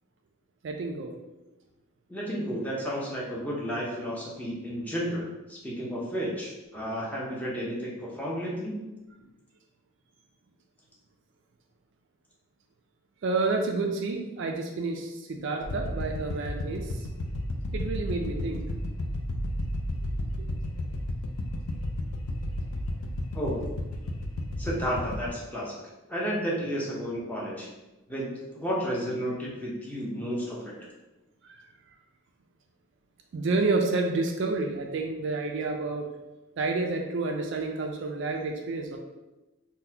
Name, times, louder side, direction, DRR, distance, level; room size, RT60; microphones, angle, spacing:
voice 1, 0.6-1.2 13.2-17.0 17.7-18.6 20.4-20.5 30.2-30.4 31.4-31.6 33.3-36.1 36.6-39.0, right 3 dB, 55° right, 3 dB, 0.3 m, -29 dB
voice 2, 2.1-8.9 23.3-23.6 24.6-25.8 26.1-27.7 28.1-28.3 28.5-30.7, equal, 5° left, -5 dB, 0.6 m, -32 dB
sound 1, 15.6-25.3, left 1 dB, 80° left, 0.4 m, -33 dB
3.9 x 2.2 x 2.7 m, 1.1 s
head